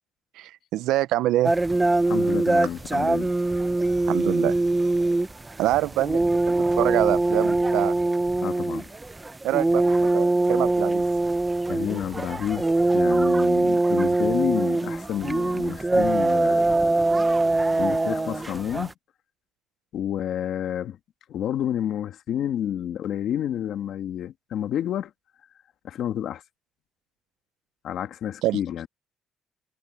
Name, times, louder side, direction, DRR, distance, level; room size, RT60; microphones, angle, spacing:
voice 1, 0.4-1.5 4.1-4.6 5.6-7.9 9.4-11.0 28.4-28.6, right 15 dB, 90° right, 0.5 m, -25 dB
sound 1, 1.4-18.9, right 2 dB, 10° right, 0.8 m, -23 dB
voice 2, 2.1-3.3 8.4-8.9 11.7-16.9 17.8-18.9 19.9-21.0 21.3-25.1 25.8-26.4 27.8-28.9, left 10 dB, 60° left, 1.7 m, -29 dB
cardioid pair, 155°, 0 cm